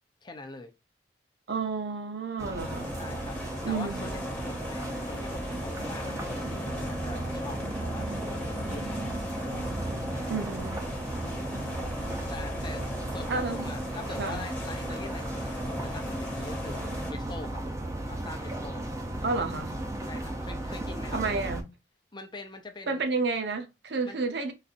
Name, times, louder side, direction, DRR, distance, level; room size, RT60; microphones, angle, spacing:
voice 1, 0.2-0.7 3.0-3.4 3.6-8.9 11.2-11.5 12.3-12.9 13.1-17.6 18.1-18.9 20.1-21.2 22.1-23.1 24.1-24.2, left 3 dB, 25° left, 0.6 m, -43 dB
voice 2, 1.5-2.9 3.6-4.2 10.3-10.8 13.3-13.7 14.2-14.4 19.2-19.8 21.1-21.7 22.9-24.5, right 4 dB, 65° right, 0.7 m, -31 dB
sound 1, 2.4-21.6, right 1 dB, 20° right, 0.6 m, -35 dB
sound 2, 2.6-17.1, left 1 dB, 10° left, 1.1 m, -39 dB
4.1 x 2.6 x 2.5 m
head